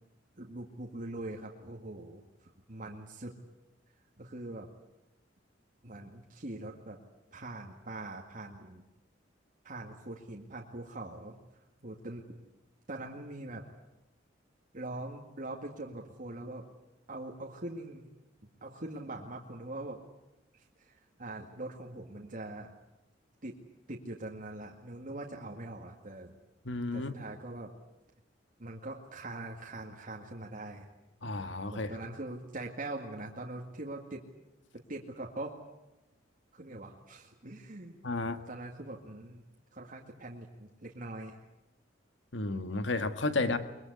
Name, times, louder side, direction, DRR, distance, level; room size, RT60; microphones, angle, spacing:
voice 1, 0.4-3.3 4.2-4.7 5.8-7.0 7.3-8.8 9.6-11.4 11.8-12.4 12.9-13.6 14.7-16.6 17.1-18.1 18.6-20.0 20.5-22.7 23.4-23.6 23.9-26.3 26.9-27.7 28.6-30.9 31.7-34.2 34.9-35.5 36.5-38.0 38.5-39.5 39.7-41.4 43.4-43.6, right 2 dB, 50° right, 0 dB, 2.2 m, -42 dB
voice 2, 26.7-27.2 31.2-31.9 38.0-38.4 42.3-43.6, left 2 dB, 80° left, 9 dB, 1.8 m, -32 dB
23.0 x 22.5 x 9.6 m, 0.98 s
head